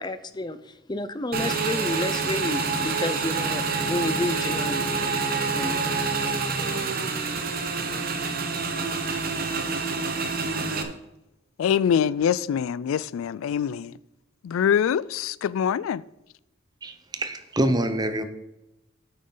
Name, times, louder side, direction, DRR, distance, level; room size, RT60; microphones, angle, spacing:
voice 1, 0.0-5.1 5.5-6.0, left 2 dB, 20° left, 0.5 m, -30 dB
Motorcycle / Engine, 1.3-10.8, right 4 dB, 45° right, 1.0 m, -27 dB
voice 2, 11.6-13.9 14.4-16.0, left 8 dB, 90° left, 0.3 m, -24 dB
voice 3, 16.8-18.2, right 1 dB, 20° right, 0.7 m, -26 dB
9.3 x 8.6 x 3.9 m
head